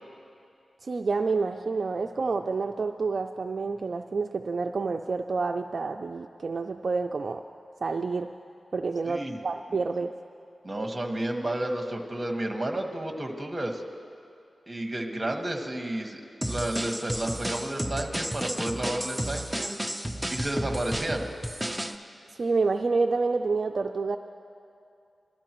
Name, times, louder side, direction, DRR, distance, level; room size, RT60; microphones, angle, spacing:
voice 1, 0.8-7.4 7.8-8.3 8.7-10.1 22.4-24.2, right 4 dB, 55° right, 4 dB, 0.4 m, -28 dB
voice 2, 9.1-9.4 9.7-9.8 10.6-13.8 14.7-19.8 20.3-21.3, right 1 dB, 20° right, 2 dB, 1.4 m, -31 dB
sound 1, 16.4-22.0, right 1 dB, 5° right, 0.6 m, -32 dB
22.5 x 13.0 x 3.0 m, 2.5 s
wide cardioid pair, 100°, 0 cm